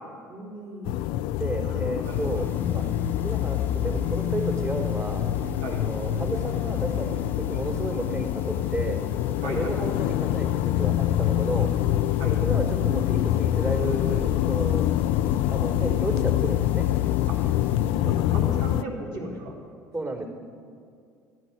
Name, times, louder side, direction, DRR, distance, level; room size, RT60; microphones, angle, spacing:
voice 1, 0.3-1.0 1.6-2.5 3.2-3.3 5.6-5.9 9.4-9.8 12.2-12.4 17.3-17.4 17.9-19.5, right 1 dB, 65° right, -1 dB, 2.8 m, -37 dB
sound 1, 0.9-18.8, left 13 dB, 60° left, 0.4 m, -25 dB
voice 2, 1.4-2.8 3.2-5.3 5.8-9.0 9.4-11.7 12.3-14.9 15.5-16.9 19.9-20.3, right 2 dB, 30° right, -2 dB, 3.6 m, -32 dB
sound 2, 2.0-17.9, left 2 dB, 20° left, 1.4 m, -40 dB
14.0 x 10.0 x 6.0 m, 2.3 s
figure-of-eight pair, 60°, 10 cm